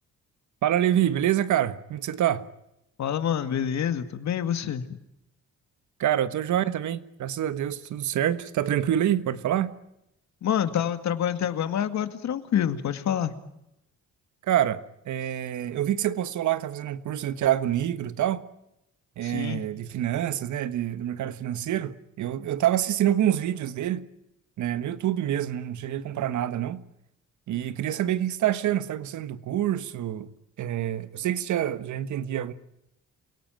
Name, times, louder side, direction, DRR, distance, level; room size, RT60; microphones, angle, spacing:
voice 1, 0.6-2.4 6.0-9.7 14.4-18.4 19.2-24.0 24.6-26.8 27.5-30.3 30.6-32.5, right 11 dB, 75° right, 1.4 m, -26 dB
voice 2, 3.0-5.0 10.4-13.3 19.2-19.6, left 9 dB, 65° left, 2.1 m, -27 dB
28.0 x 18.0 x 9.2 m
cardioid pair, 90°, 30 cm